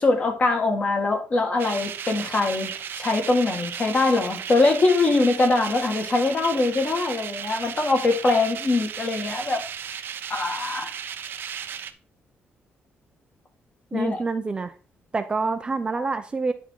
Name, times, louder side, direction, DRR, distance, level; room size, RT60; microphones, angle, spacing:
voice 1, 0.0-2.7 3.0-9.7 10.3-10.9 13.9-14.2, left 3 dB, 35° left, 2.0 m, -22 dB
sound 1, 1.6-11.9, right 8 dB, 60° right, 0.7 m, -35 dB
voice 2, 13.9-14.7 15.1-16.5, right 4 dB, 25° right, 0.6 m, -27 dB
10.5 x 3.7 x 4.6 m
cardioid pair, 150°, 4 cm